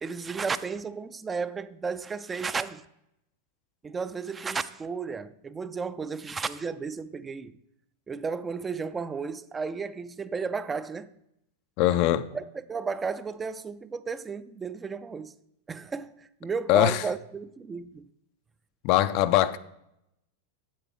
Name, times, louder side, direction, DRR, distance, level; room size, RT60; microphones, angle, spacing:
voice 1, 0.0-2.8 3.8-7.6 8.1-11.1 12.3-15.3 15.7-18.1, right 5 dB, 20° right, 0.4 m, -33 dB
voice 2, 11.8-12.3 16.7-17.0 18.8-19.6, left 13 dB, 50° left, 0.4 m, -22 dB
8.4 x 8.1 x 3.7 m
figure-of-eight pair, 90°, 0 cm